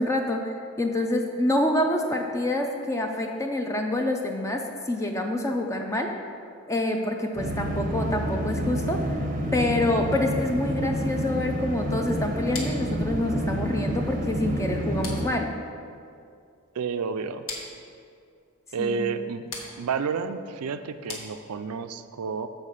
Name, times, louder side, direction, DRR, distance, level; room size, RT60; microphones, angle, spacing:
voice 1, 0.0-6.1 6.7-9.2 9.5-15.5 18.8-19.2, left 1 dB, 15° left, 3 dB, 0.4 m, -27 dB
sound 1, 7.4-15.3, right 1 dB, 35° right, 0.6 m, -29 dB
sound 2, 12.5-21.9, left 3 dB, 60° left, 1.2 m, -43 dB
voice 2, 16.8-17.4 18.7-19.5 19.8-22.5, right 5 dB, 90° right, 10 dB, 0.4 m, -30 dB
7.4 x 4.5 x 6.5 m, 2.4 s
head